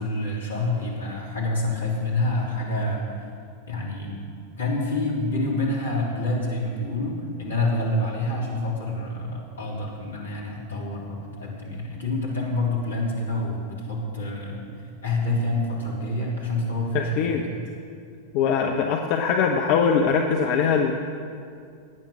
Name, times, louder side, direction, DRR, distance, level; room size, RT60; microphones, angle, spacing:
voice 1, 0.0-3.0 3.7-4.2 4.6-14.7 15.0-17.4, left 2 dB, 70° left, -2 dB, 3.3 m, -27 dB
voice 2, 16.9-17.4 18.3-20.9, left 6 dB, 45° left, 3 dB, 1.0 m, -22 dB
17.5 x 9.3 x 6.4 m, 2.4 s
figure-of-eight pair, 90°, 0 cm